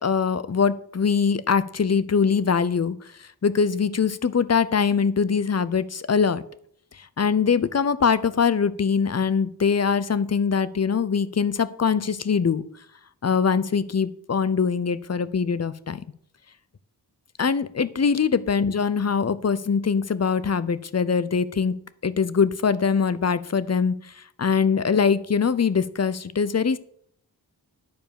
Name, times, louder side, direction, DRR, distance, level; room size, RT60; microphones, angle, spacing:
voice 1, 0.0-3.0 3.4-6.4 7.0-12.6 13.2-16.0 17.4-21.7 22.0-26.8, left 6 dB, 40° left, 16 dB, 0.6 m, -22 dB
10.5 x 4.5 x 7.0 m, 0.65 s
cardioid pair, 50°, 41 cm